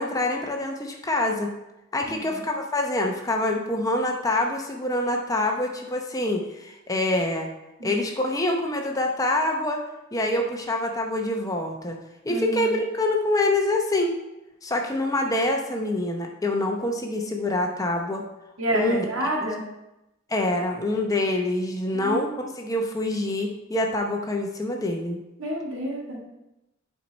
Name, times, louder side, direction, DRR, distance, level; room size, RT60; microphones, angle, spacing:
voice 1, 0.0-1.5 1.9-7.5 7.8-9.8 10.1-12.0 12.2-14.1 14.6-18.2 18.7-19.0 20.3-25.2, left 1 dB, 15° left, 2 dB, 0.7 m, -26 dB
voice 2, 2.1-2.4 7.8-8.0 12.3-12.7 18.6-19.6 21.9-22.4 25.4-26.2, right 1 dB, 85° right, -1 dB, 1.9 m, -29 dB
9.1 x 4.6 x 4.1 m, 0.94 s
head